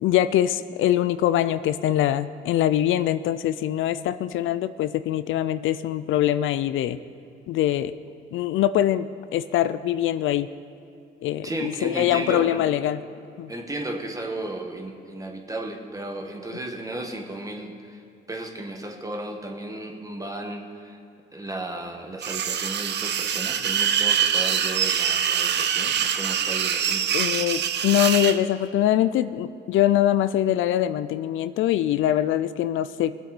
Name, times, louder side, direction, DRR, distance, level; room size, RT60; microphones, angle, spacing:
voice 1, 0.0-7.0 7.5-7.9 8.3-9.1 9.3-10.5 11.2-13.0 13.4-13.5 27.1-33.1, left 12 dB, 80° left, 13 dB, 0.5 m, -23 dB
voice 2, 11.4-12.6 13.5-18.0 18.3-21.0 21.3-27.1, right 1 dB, 15° right, 3 dB, 1.6 m, -34 dB
sound 1, 22.2-28.4, right 8 dB, 60° right, 0.7 m, -24 dB
20.5 x 8.0 x 4.1 m, 2.4 s
cardioid pair, 90°, 20 cm